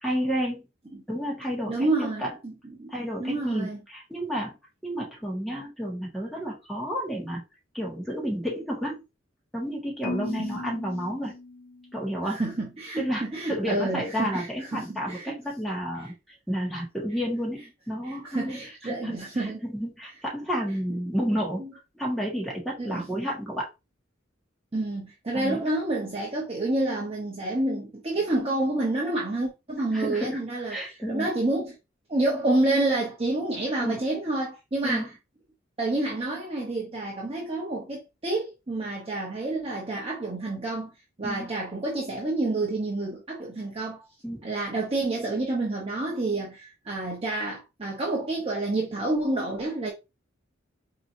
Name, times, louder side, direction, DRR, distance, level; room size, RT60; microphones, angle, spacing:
voice 1, 0.0-0.6 1.1-2.3 2.9-4.5 4.8-7.4 7.7-9.0 9.5-11.3 11.9-12.4 13.0-16.1 16.5-21.6 21.9-23.7 25.3-25.6 29.9-30.4 30.7-31.3 33.8-34.0 34.8-35.1 41.2-41.5 44.2-44.4, equal, ahead, 1.5 m, -31 dB
voice 2, 1.7-2.9 3.2-3.8 10.4-10.5 12.2-15.3 18.1-19.6 21.2-21.3 21.6-21.7 22.8-23.0 24.7-31.7 32.1-35.1 35.8-40.9 41.2-44.0 44.4-49.9, right 2 dB, 30° right, 1.0 m, -29 dB
Marimba xylophone, 10.0-12.2, left 3 dB, 45° left, 0.3 m, -37 dB
4.7 x 2.9 x 2.7 m
head